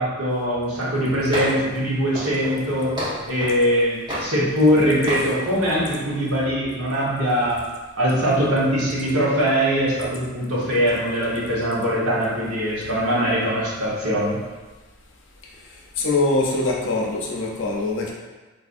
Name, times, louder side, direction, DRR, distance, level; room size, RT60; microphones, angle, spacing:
voice 1, 0.0-2.9 3.3-7.6 8.0-14.4, equal, 75° right, -7 dB, 1.1 m, -22 dB
sound 1, 1.3-1.7 2.1-3.6 4.1-4.8 5.1-5.3, equal, 20° right, 0.8 m, -30 dB
voice 2, 16.0-18.1, left 2 dB, 55° left, -2 dB, 0.6 m, -23 dB
4.0 x 2.6 x 2.5 m, 1.2 s
head